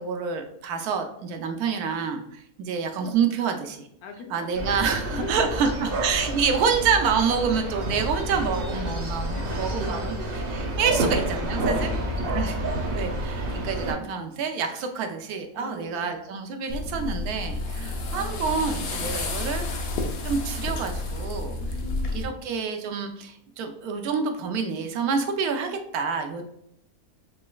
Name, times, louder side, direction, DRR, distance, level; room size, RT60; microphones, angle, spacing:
voice 1, 0.0-3.9 4.3-10.2 10.5-11.9 12.3-12.6 12.9-19.6 20.2-21.5 22.1-26.6, right 6 dB, 90° right, 5 dB, 1.1 m, -27 dB
voice 2, 4.0-4.5 5.1-5.9 7.3-7.4 8.4-10.3 10.9-11.0 11.7-12.4 15.5-16.1 21.5-22.3, left 4 dB, 85° left, 4 dB, 1.1 m, -41 dB
sound 1, 4.5-13.9, right 1 dB, 50° right, 0.8 m, -29 dB
sound 2, 16.7-22.2, left 2 dB, 60° left, 0.6 m, -30 dB
4.0 x 3.1 x 2.3 m, 0.75 s
omnidirectional pair, 1.6 m